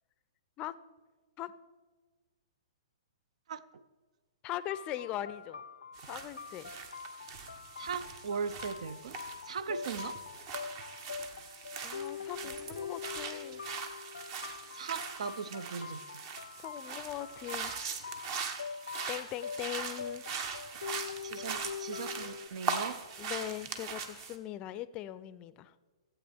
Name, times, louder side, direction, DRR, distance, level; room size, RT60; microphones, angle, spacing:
voice 1, 3.5-3.8 7.8-9.2 9.4-10.2 14.7-16.2 18.8-19.0 21.2-23.0, right 6 dB, 65° right, 15 dB, 0.6 m, -39 dB
voice 2, 4.4-5.6 6.0-6.7 11.8-13.6 16.6-18.0 18.3-18.6 19.1-20.2 23.2-25.7, left 13 dB, 30° left, 16 dB, 0.4 m, -40 dB
sound 1, 4.7-22.5, left 6 dB, 80° left, 0.5 m, -44 dB
sound 2, 5.9-24.4, right 6 dB, 45° right, 1.1 m, -41 dB
15.0 x 8.3 x 3.5 m, 1.3 s
hypercardioid pair, 125°, 4 cm